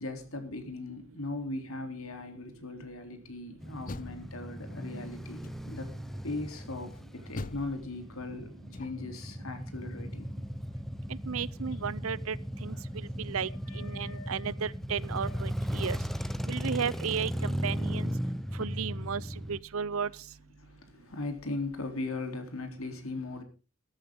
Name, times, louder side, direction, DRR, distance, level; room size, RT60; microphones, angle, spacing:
voice 1, 0.0-5.9 6.2-10.3 13.4-14.5 15.3-15.4 20.6-23.4, left 2 dB, 70° left, 3.6 m, -39 dB
Door, 3.6-4.9 5.4-6.0 7.3-9.2, left 3 dB, 40° left, 0.6 m, -44 dB
Male speech man speaking / Motorcycle / Idling, 3.6-19.6, equal, ahead, 0.9 m, -37 dB
voice 2, 11.3-12.4 12.6-12.8 13.2-13.5 13.7-16.0 16.5-18.1 18.6-19.2 19.5-20.1, right 6 dB, 70° right, 0.6 m, -33 dB
15.0 x 14.0 x 3.8 m
head